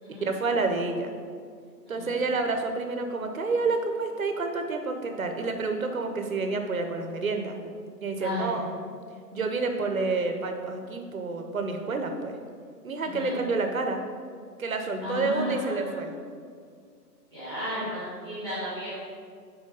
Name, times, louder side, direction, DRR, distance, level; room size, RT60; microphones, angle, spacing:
voice 1, 0.1-1.1 1.9-7.6 8.0-8.7 9.3-12.4 12.8-14.0 14.6-16.1, right 3 dB, 55° right, 5 dB, 0.9 m, -29 dB
voice 2, 8.2-8.5 13.0-13.4 15.0-16.0 17.3-18.9, equal, 15° left, -13 dB, 1.9 m, -34 dB
6.5 x 4.6 x 5.4 m, 2.1 s
hypercardioid pair, 175°, 50 cm